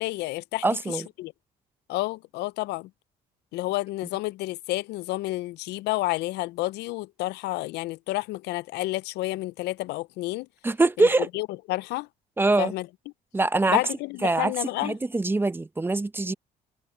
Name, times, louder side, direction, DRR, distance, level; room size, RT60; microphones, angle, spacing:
voice 1, 0.0-1.3 1.9-2.9 3.5-10.5 11.0-11.1 11.3-12.1 12.6-12.9 13.7-15.0, left 18 dB, 80° left, 0.4 m, -30 dB
voice 2, 0.6-1.0 10.6-11.3 12.4-12.7 13.3-13.8 14.2-14.5 14.8-16.3, right 2 dB, 15° right, 0.7 m, -23 dB
cardioid pair, 110°, 17 cm